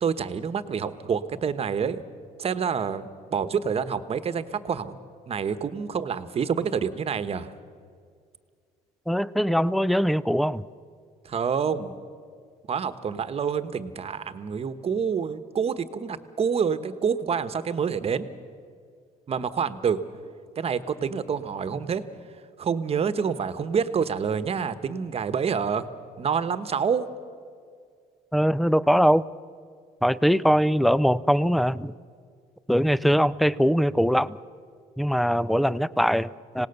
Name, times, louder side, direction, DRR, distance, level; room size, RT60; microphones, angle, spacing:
voice 1, 0.0-2.0 2.4-5.0 5.3-7.5 11.2-12.0 12.7-18.3 19.3-20.0 20.6-22.0 22.6-25.9 26.2-27.0, right 6 dB, 40° right, 12 dB, 1.2 m, -27 dB
voice 2, 9.1-10.6 28.3-29.2 30.0-31.9 32.7-34.4 35.0-36.7, equal, ahead, 19 dB, 0.4 m, -22 dB
26.0 x 18.0 x 6.7 m, 2.1 s
cardioid pair, 105°, 15 cm